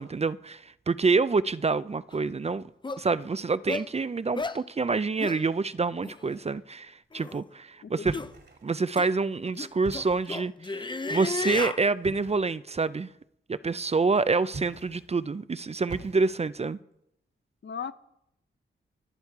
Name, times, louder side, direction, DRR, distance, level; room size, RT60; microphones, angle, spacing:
voice 1, 0.0-2.6 3.0-8.1 8.6-13.1 13.5-16.8, right 4 dB, 30° right, 0.4 m, -27 dB
sound 1, 2.1-2.2 2.8-3.0 3.7-3.9 4.4-4.6 5.2-5.4 6.0-6.2 7.1-7.4 8.1-8.3 9.0-9.1 9.6-11.8, left 3 dB, 25° left, 0.5 m, -33 dB
voice 2, 7.8-8.3 17.6-17.9, left 7 dB, 60° left, 0.7 m, -37 dB
box-dropping-with-stones, 8.0-8.9 9.7-10.4 12.0-12.5 14.5-15.1 15.9-16.6, right 3 dB, 55° right, 2.3 m, -42 dB
24.0 x 8.3 x 4.7 m
wide cardioid pair, 80°, 21 cm